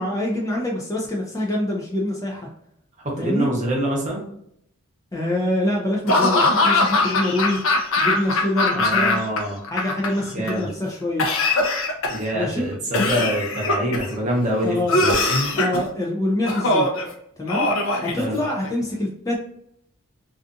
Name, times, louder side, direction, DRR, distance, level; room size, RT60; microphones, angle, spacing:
voice 1, 0.0-2.5 3.2-3.5 5.1-7.6 8.0-9.2 9.7-11.3 12.3-12.7 14.6-15.0 15.6-16.9 17.4-17.7 18.0-19.4, left 1 dB, 15° left, -2 dB, 0.3 m, -25 dB
voice 2, 3.0-4.2 8.7-9.6 10.3-10.7 12.1-15.1 18.2-18.4, right 1 dB, 35° right, -2 dB, 0.8 m, -25 dB
Laughter / Cough, 6.1-9.4 9.6-10.5 11.2-12.3 12.9-14.1 14.9-15.8 16.5-17.0 17.5-18.7, left 2 dB, 65° left, 0.5 m, -21 dB
2.5 x 2.4 x 2.5 m, 0.73 s
head